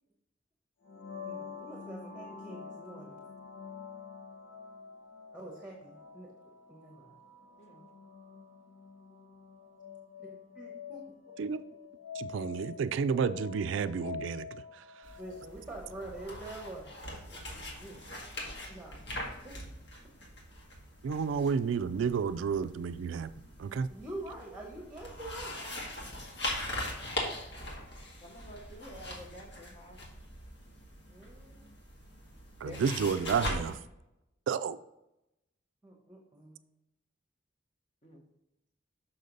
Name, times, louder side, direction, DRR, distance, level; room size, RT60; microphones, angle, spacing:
sound 1, 0.8-16.5, left 6 dB, 90° left, 1.2 m, -47 dB
voice 1, 1.2-3.2 5.3-6.3 6.7-7.2 10.2-11.0 15.2-16.9 17.3-18.0 18.4-19.6 23.9-25.8 31.1-31.6 33.2-33.7 35.8-36.6, right 2 dB, 10° right, -1 dB, 1.0 m, -46 dB
voice 2, 12.1-14.8 21.0-23.3 23.6-23.9 32.6-33.8 34.5-34.8, right 6 dB, 80° right, 13 dB, 0.3 m, -31 dB
sound 2, 15.0-33.8, left 1 dB, 65° left, 1.8 m, -42 dB
voice 3, 28.2-30.0 32.6-32.8 38.0-38.2, left 1 dB, 35° left, 1 dB, 1.1 m, -49 dB
6.6 x 5.8 x 3.9 m, 0.89 s
head